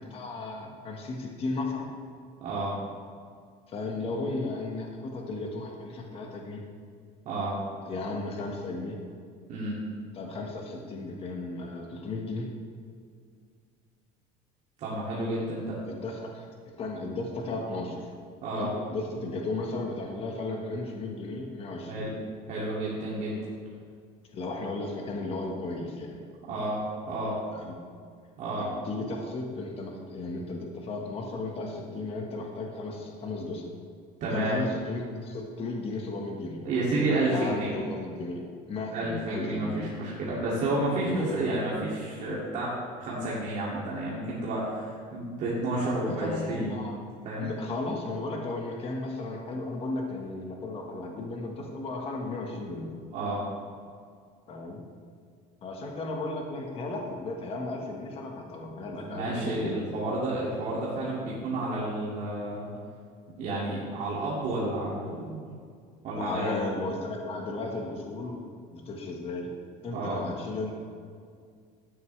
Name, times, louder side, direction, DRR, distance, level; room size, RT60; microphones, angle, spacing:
voice 1, 0.0-1.9 3.7-6.6 7.8-9.0 10.1-12.5 15.9-16.4 16.8-18.1 18.5-22.1 24.3-26.2 27.5-27.7 28.5-33.7 34.3-36.6 37.3-39.8 41.0-41.5 46.0-47.0 47.4-52.9 54.5-54.8 55.6-59.8 66.2-68.4 68.7-69.5 69.8-70.8, left 2 dB, 35° left, 1 dB, 1.4 m, -35 dB
voice 2, 2.4-2.7 7.2-7.6 9.5-9.8 14.8-15.8 18.4-18.7 21.9-22.1 22.5-23.3 26.5-26.8 27.1-27.4 28.4-28.7 34.2-34.6 36.6-37.7 38.9-42.7 43.0-46.8 47.2-47.5 53.1-53.4 59.0-62.7 63.4-65.5 66.0-66.6 69.9-70.2, right 2 dB, 50° right, -7 dB, 2.4 m, -30 dB
12.5 x 9.5 x 3.3 m, 2.2 s
cardioid pair, 150°, 17 cm